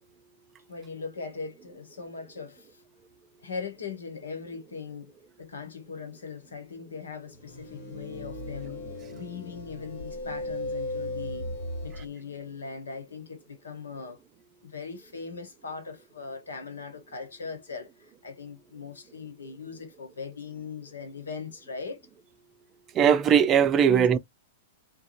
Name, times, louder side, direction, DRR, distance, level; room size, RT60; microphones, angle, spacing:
voice 1, 0.7-2.7 3.4-5.1 5.4-8.8 9.1-11.5 11.8-14.2 14.6-22.0 23.9-24.1, left 5 dB, 90° left, 1.0 m, -40 dB
sound 1, 7.4-12.1, left 1 dB, 65° left, 1.4 m, -36 dB
voice 2, 22.9-24.2, right 8 dB, 30° right, 0.4 m, -19 dB
2.5 x 2.2 x 2.9 m
hypercardioid pair, 120°, 0 cm